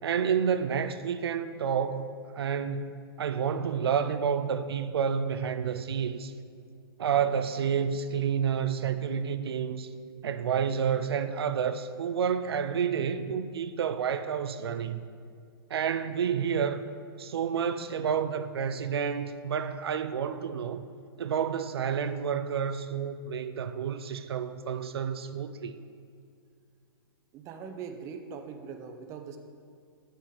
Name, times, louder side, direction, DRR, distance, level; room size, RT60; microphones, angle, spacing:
voice 1, 0.0-6.3 7.0-9.9 10.2-15.0 15.7-16.8 17.2-20.9 21.2-25.7, right 7 dB, 90° right, 0.4 m, -29 dB
voice 2, 27.3-29.4, right 6 dB, 25° right, 0.6 m, -41 dB
8.1 x 6.4 x 3.9 m
hypercardioid pair, 145°, 13 cm